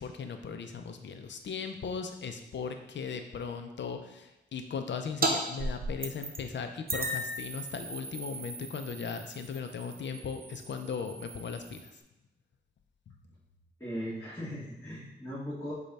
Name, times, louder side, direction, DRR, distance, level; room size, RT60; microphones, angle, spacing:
voice 1, 0.0-12.0 13.1-13.2, left 6 dB, 75° left, 7 dB, 0.5 m, -38 dB
sound 1, 5.2-5.3 5.6-6.5 6.9-12.0, right 2 dB, 50° right, 0.6 m, -36 dB
voice 2, 13.8-15.7, equal, 15° left, -10 dB, 1.4 m, -38 dB
5.1 x 2.3 x 4.1 m, 0.98 s
cardioid pair, 55°, 19 cm